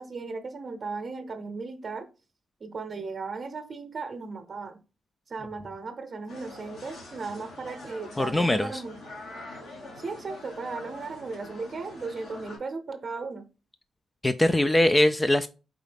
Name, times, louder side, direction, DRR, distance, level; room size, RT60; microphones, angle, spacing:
voice 1, 0.0-2.1 2.6-4.8 5.3-8.9 10.0-13.4, right 4 dB, 45° right, 8 dB, 0.7 m, -36 dB
sound 1, 6.3-12.6, left 2 dB, 80° left, 2.1 m, -44 dB
voice 2, 8.2-8.8 14.2-15.5, left 1 dB, 20° left, 10 dB, 0.3 m, -22 dB
4.7 x 2.7 x 3.4 m, 0.32 s
cardioid pair, 65°, 0 cm